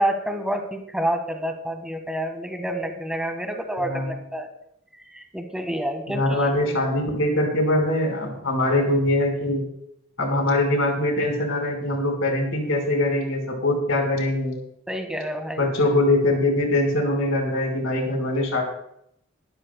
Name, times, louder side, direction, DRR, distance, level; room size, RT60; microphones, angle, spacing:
voice 1, 0.0-4.5 5.1-6.4 14.9-15.7, right 1 dB, 5° right, 4 dB, 1.6 m, -28 dB
voice 2, 6.1-9.6 10.2-14.6 15.6-18.6, left 1 dB, 75° left, 1 dB, 4.5 m, -22 dB
22.0 x 13.0 x 2.2 m, 0.74 s
head